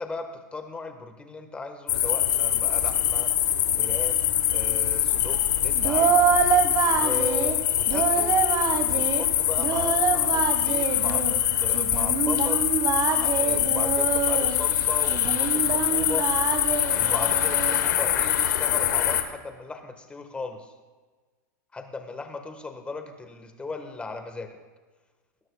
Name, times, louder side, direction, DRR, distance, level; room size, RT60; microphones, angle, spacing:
voice 1, 0.0-3.3 3.8-4.2 4.5-6.2 6.9-8.4 8.9-12.7 13.1-16.3 16.9-20.7 21.7-24.5, left 3 dB, 10° left, 6 dB, 1.3 m, -37 dB
sound 1, 1.9-19.2, left 11 dB, 85° left, 1.1 m, -24 dB
Singing, 5.7-7.6 7.9-9.2 9.6-11.3 11.7-14.6 15.1-17.8, right 7 dB, 35° right, 1.3 m, -26 dB
19.0 x 12.0 x 2.3 m, 1.4 s
supercardioid pair, 130°, 9 cm